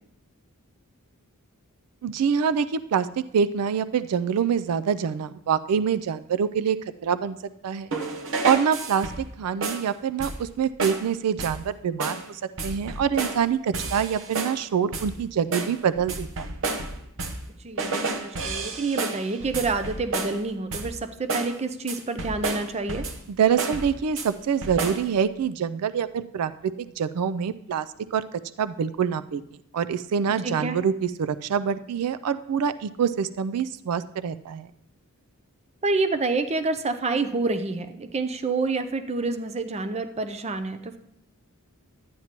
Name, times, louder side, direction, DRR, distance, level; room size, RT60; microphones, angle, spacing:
voice 1, 2.0-3.1 3.3-6.8 7.0-7.4 7.6-7.9 8.4-9.1 9.4-16.5 23.3-26.5 26.8-28.2 28.6-29.4 29.7-34.7, right 7 dB, 85° right, 14 dB, 0.4 m, -25 dB
sound 1, 7.9-9.3 9.6-9.9 10.2-10.5 10.8-11.1 11.4-11.7 12.0-12.3 12.6-13.4 13.7-14.6 14.9-15.2 15.5-17.5 17.8-20.4 20.7-21.0 21.3-21.6 21.9-23.3 23.6-24.3 24.6-25.1, right 3 dB, 60° right, 0.9 m, -31 dB
voice 2, 17.6-23.1 30.4-30.8 35.8-41.0, right 3 dB, 30° right, 9 dB, 0.5 m, -28 dB
12.0 x 9.3 x 2.9 m, 0.74 s
head